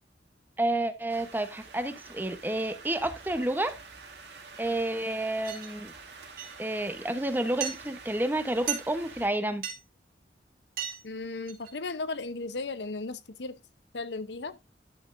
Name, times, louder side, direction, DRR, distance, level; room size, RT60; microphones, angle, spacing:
voice 1, 0.6-3.8 4.6-5.9 6.6-9.7, right 1 dB, 10° right, 0.9 m, -30 dB
sound 1, 1.1-9.3, right 4 dB, 80° right, 2.3 m, -48 dB
sound 2, 5.4-5.7 6.4-6.6 7.6-7.8 8.7-9.0 9.6-9.8 10.8-11.0 11.3-11.7, right 9 dB, 55° right, 1.8 m, -34 dB
voice 2, 11.0-13.6 13.9-14.6, left 3 dB, 80° left, 0.8 m, -35 dB
11.0 x 8.9 x 2.6 m
head